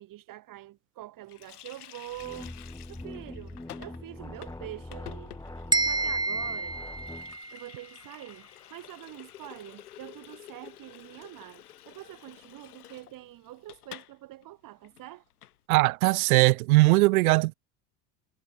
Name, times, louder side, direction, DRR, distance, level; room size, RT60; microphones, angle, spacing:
voice 1, 0.0-2.5 2.9-5.3 5.7-6.8 7.5-15.2, right 15 dB, 45° right, 2.1 m, -45 dB
Water tap faucet, 1.3-14.2 14.4-14.5 14.8-15.6, left 13 dB, 75° left, 6.9 m, -50 dB
sound 1, 2.1-7.4, left 2 dB, 10° left, 7.4 m, -43 dB
sound 2, 5.7-7.7, right 2 dB, 10° right, 1.7 m, -29 dB
voice 2, 15.7-17.5, right 21 dB, 70° right, 0.5 m, -20 dB
figure-of-eight pair, 70°, 45 cm